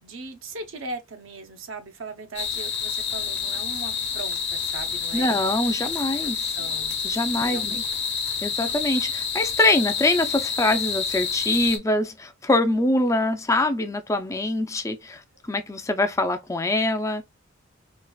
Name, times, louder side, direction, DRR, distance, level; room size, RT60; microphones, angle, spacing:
voice 1, 0.0-5.3 6.2-6.9 7.4-7.9, right 3 dB, 70° right, 0.8 m, -39 dB
sound 1, 2.4-11.8, left 6 dB, 60° left, 0.9 m, -28 dB
voice 2, 5.1-6.6 7.0-7.8 8.4-17.2, left 2 dB, 15° left, 0.4 m, -24 dB
4.4 x 2.4 x 2.3 m
head